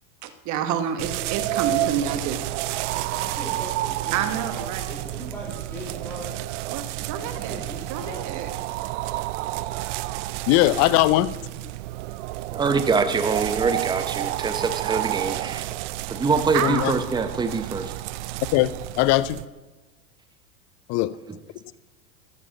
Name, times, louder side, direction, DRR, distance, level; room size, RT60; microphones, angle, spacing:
voice 1, 0.2-2.6 4.1-4.8 6.7-7.6 7.9-8.5 16.5-17.0, right 8 dB, 45° right, 8 dB, 1.2 m, -28 dB
sound 1, 1.0-19.5, right 16 dB, 60° right, 0.5 m, -30 dB
voice 2, 3.1-6.3 7.2-8.4, equal, 5° left, -5 dB, 4.0 m, -39 dB
voice 3, 10.5-11.3 16.6-16.9 18.5-18.7 19.0-19.4 20.9-21.1, left 17 dB, 40° left, 17 dB, 0.5 m, -19 dB
voice 4, 12.5-15.7 16.1-17.9 21.3-21.4, right 4 dB, 10° right, 9 dB, 0.7 m, -24 dB
13.5 x 12.0 x 2.9 m, 1.2 s
hypercardioid pair, 90°, 41 cm